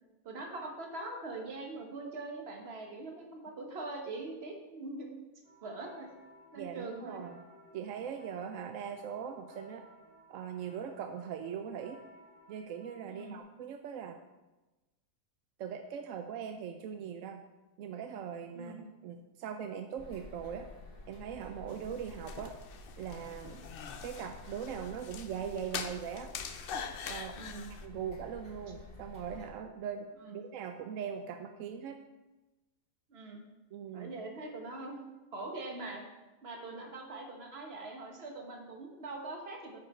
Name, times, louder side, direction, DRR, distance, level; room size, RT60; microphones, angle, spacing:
voice 1, 0.2-5.1 5.6-6.1 6.5-7.2 13.1-13.4 18.5-18.8 27.3-27.7 30.2-30.4 33.1-33.4 33.9-35.0 35.3-36.0 36.4-39.8, right 2 dB, 45° right, 1 dB, 1.4 m, -42 dB
sound 1, 5.4-13.4, left 1 dB, 85° right, 2.1 m, -58 dB
voice 2, 6.5-7.4 7.7-9.8 10.3-12.0 12.5-14.2 15.6-17.4 17.8-18.7 19.0-20.7 21.1-22.5 23.0-23.6 24.0-26.3 27.1-27.4 27.8-32.0 33.7-34.1, right 8 dB, 70° right, 6 dB, 0.8 m, -40 dB
sound 2, 20.0-29.5, left 2 dB, 40° left, 1.4 m, -50 dB
sound 3, 21.7-27.8, left 7 dB, 85° left, 0.5 m, -44 dB
9.4 x 5.1 x 4.3 m, 1.1 s
omnidirectional pair, 1.6 m